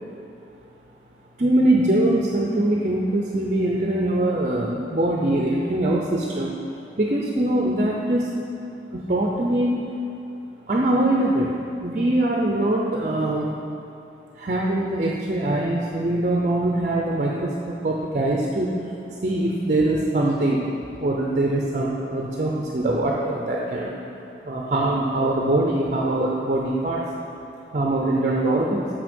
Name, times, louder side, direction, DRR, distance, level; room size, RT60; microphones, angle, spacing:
voice 1, 1.4-6.6 7.0-8.3 8.9-9.7 10.7-11.5 11.8-13.5 14.3-18.7 19.2-20.7 21.0-23.9 24.4-27.0 27.7-28.9, right 1 dB, 40° right, -2 dB, 0.6 m, -22 dB
6.3 x 6.2 x 5.2 m, 2.7 s
head